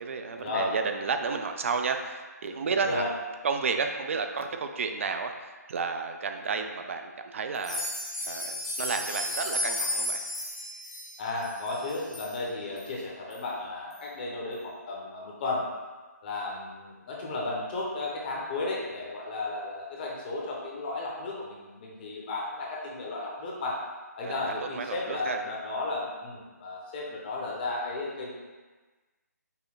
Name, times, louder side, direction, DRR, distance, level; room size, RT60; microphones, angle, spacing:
voice 1, 0.0-3.0 3.4-10.2 24.2-25.4, right 5 dB, 50° right, 6 dB, 0.4 m, -32 dB
sound 1, 7.5-12.3 12.8-12.9 13.3-13.4 13.9-14.0, left 1 dB, 5° left, 0.7 m, -33 dB
voice 2, 11.2-15.6 16.2-23.8 24.2-28.3, left 2 dB, 30° left, -3 dB, 0.8 m, -34 dB
5.5 x 2.1 x 3.9 m, 1.3 s
figure-of-eight pair, 150°, 9 cm